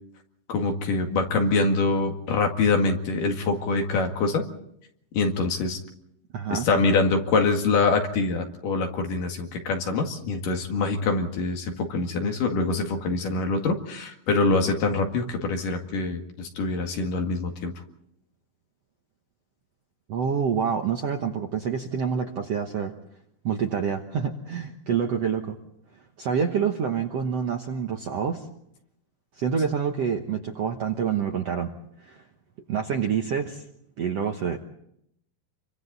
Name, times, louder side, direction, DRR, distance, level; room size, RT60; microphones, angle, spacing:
voice 1, 0.5-4.4 5.1-5.8 6.5-17.7, left 3 dB, 60° left, 3 dB, 3.5 m, -24 dB
voice 2, 6.3-6.7 20.1-22.9 23.4-25.6 26.2-28.5 29.4-31.7 32.0-32.2 32.7-33.6 34.0-34.6, right 7 dB, 65° right, 3 dB, 1.7 m, -27 dB
29.0 x 24.0 x 4.1 m, 0.74 s
omnidirectional pair, 4.4 m